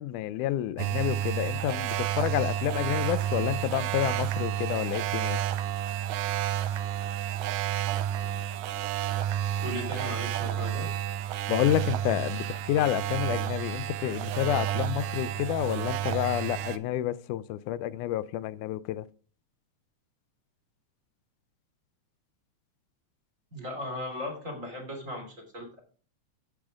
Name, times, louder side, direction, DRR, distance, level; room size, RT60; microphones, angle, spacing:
voice 1, 0.0-5.4 11.5-19.1, left 13 dB, 90° left, 2.2 m, -29 dB
sound 1, 0.8-16.8, right 11 dB, 80° right, 2.0 m, -30 dB
voice 2, 9.6-10.9 23.5-25.8, left 1 dB, 25° right, 3.1 m, -37 dB
15.0 x 6.4 x 3.6 m
omnidirectional pair, 3.5 m